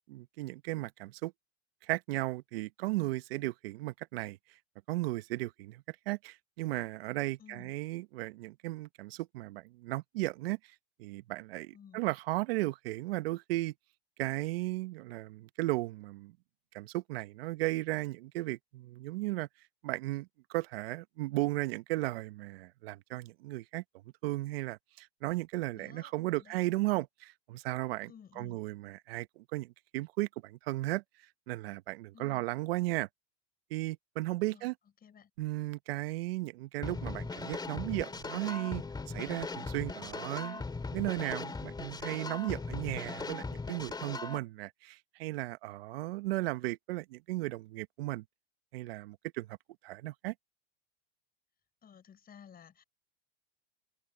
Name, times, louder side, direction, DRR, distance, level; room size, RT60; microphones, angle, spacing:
voice 1, 0.1-1.3 1.8-4.4 4.9-13.7 14.2-16.3 16.7-19.5 19.8-23.8 24.2-28.1 28.4-31.0 31.5-33.1 33.7-34.7 35.4-48.2 48.7-49.6 49.8-50.3, right 19 dB, 70° right, 1.2 m, -35 dB
voice 2, 7.4-7.7 11.7-12.1 25.7-26.6 28.1-28.6 32.1-32.4 34.5-34.7 35.0-35.3 51.8-52.8, left 8 dB, 30° left, 6.6 m, -55 dB
sound 1, 36.8-44.4, left 3 dB, 15° left, 2.4 m, -39 dB
hypercardioid pair, 100°, 31 cm